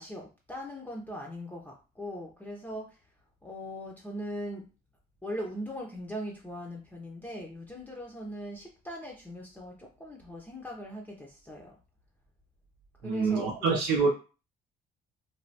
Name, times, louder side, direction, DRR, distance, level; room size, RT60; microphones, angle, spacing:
voice 1, 0.0-3.0 3.4-4.7 5.2-11.8 13.0-13.8, equal, 10° left, -1 dB, 0.6 m, -40 dB
voice 2, 13.0-14.1, right 4 dB, 85° right, 0 dB, 0.6 m, -26 dB
3.2 x 2.2 x 2.7 m, 0.33 s
cardioid pair, 110°, 17 cm